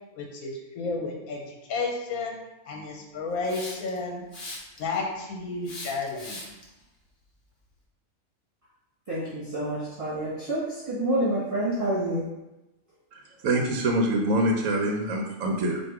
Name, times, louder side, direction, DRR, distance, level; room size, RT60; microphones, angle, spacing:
voice 1, 0.1-2.3 2.6-4.2 4.8-6.5, left 3 dB, 75° left, 0 dB, 1.1 m, -32 dB
Hiss, 3.4-4.0 4.3-4.9 5.6-6.6, left 2 dB, 40° left, 1.0 m, -39 dB
voice 2, 9.1-12.2, right 1 dB, 25° right, -11 dB, 1.4 m, -28 dB
voice 3, 13.4-15.8, right 1 dB, 70° right, 1 dB, 1.0 m, -25 dB
4.4 x 2.6 x 4.6 m, 0.97 s
omnidirectional pair, 1.5 m